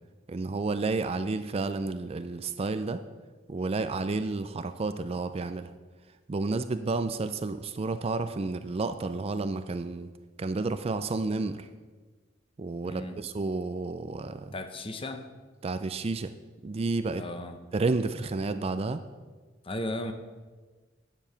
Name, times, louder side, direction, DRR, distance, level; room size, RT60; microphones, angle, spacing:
voice 1, 0.3-3.0 3.5-5.7 6.3-10.1 10.4-11.7 12.6-14.5 15.6-16.3 16.6-17.3 17.7-19.0, right 3 dB, 30° right, 10 dB, 0.4 m, -31 dB
voice 2, 12.8-13.2 14.5-15.2 17.2-17.6 19.6-20.1, left 1 dB, 30° left, 7 dB, 0.8 m, -35 dB
9.7 x 7.0 x 5.7 m, 1.3 s
head